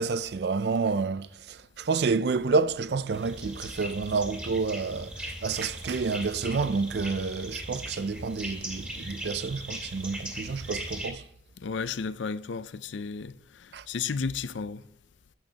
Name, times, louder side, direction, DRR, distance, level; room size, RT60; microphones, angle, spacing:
voice 1, 0.0-11.2 13.7-13.8, right 4 dB, 60° right, 0.4 m, -29 dB
sound 1, 3.1-11.1, right 1 dB, 10° right, 2.2 m, -39 dB
voice 2, 11.6-14.8, left 5 dB, 80° left, 0.5 m, -33 dB
11.5 x 8.8 x 2.9 m
head